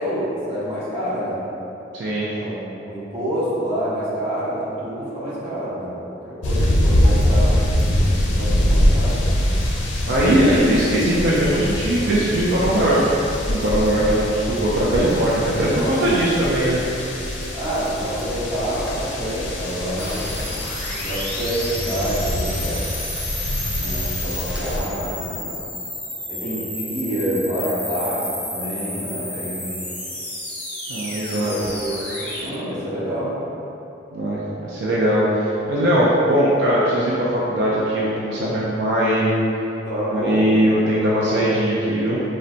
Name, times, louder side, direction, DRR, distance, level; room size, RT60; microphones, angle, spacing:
voice 1, 0.0-1.4 2.3-6.0 6.2-7.6 8.3-9.4 15.3-16.1 17.5-20.3 21.0-22.9 23.8-25.6 26.3-28.2 28.5-29.8 31.4-33.4 39.9-40.5, equal, 30° right, -11 dB, 0.8 m, -27 dB
voice 2, 1.9-2.3 10.1-13.2 13.5-16.8 30.9-31.5 34.1-39.3 40.1-42.2, right 1 dB, 65° right, -7 dB, 0.4 m, -20 dB
sound 1, 6.4-24.8, left 1 dB, 80° left, 0.5 m, -23 dB
sound 2, 20.0-32.5, left 1 dB, 5° left, 0.4 m, -31 dB
3.9 x 2.1 x 2.5 m, 3.0 s
head